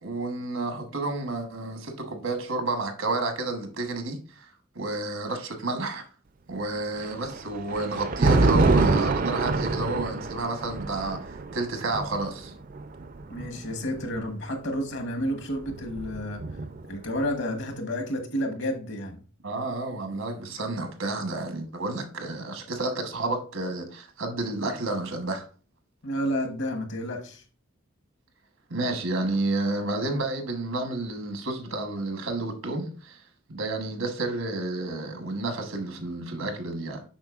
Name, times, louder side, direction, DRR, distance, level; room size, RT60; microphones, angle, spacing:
voice 1, 0.0-4.5 4.7-6.0 6.5-11.2 11.5-12.5 19.4-25.5 28.7-33.2 33.5-37.0, right 2 dB, 75° right, 1.1 m, -30 dB
Thunder, 7.0-14.2 15.2-17.0, right 3 dB, 45° right, 0.4 m, -26 dB
voice 2, 13.3-16.4 16.9-19.2 26.0-27.4, equal, 60° left, 1.1 m, -30 dB
7.3 x 5.4 x 2.4 m
head